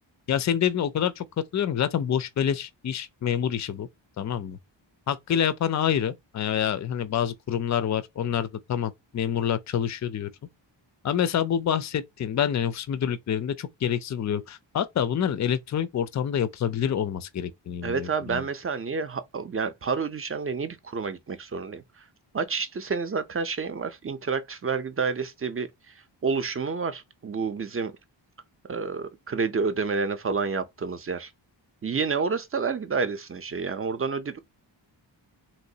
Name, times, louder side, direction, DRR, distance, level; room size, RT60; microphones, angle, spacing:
voice 1, 0.3-1.3 1.5-3.9 4.2-4.6 5.1-10.3 11.0-18.4, left 9 dB, 40° left, 0.4 m, -27 dB
voice 2, 17.8-21.8 22.3-25.9 26.2-27.9 28.7-31.3 31.8-34.4, right 5 dB, 30° right, 0.5 m, -29 dB
3.1 x 3.0 x 2.7 m
wide cardioid pair, 80°, 47 cm